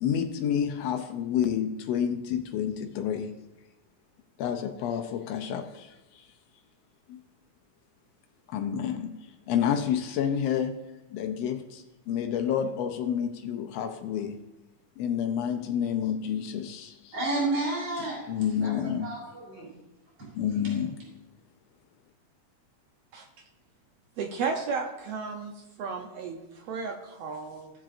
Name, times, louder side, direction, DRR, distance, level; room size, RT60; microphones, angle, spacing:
voice 1, 0.0-3.3 4.4-6.3 7.1-7.2 8.5-14.4 15.0-17.2 18.3-19.1 20.4-21.0, left 8 dB, 90° left, 6 dB, 1.5 m, -29 dB
voice 2, 17.1-18.2 18.6-19.7, right 2 dB, 50° right, -5 dB, 4.3 m, -31 dB
voice 3, 23.1-23.4 24.2-25.5 25.8-27.7, right 5 dB, 75° right, 3 dB, 1.5 m, -34 dB
16.0 x 7.4 x 2.5 m, 1.0 s
omnidirectional pair, 3.5 m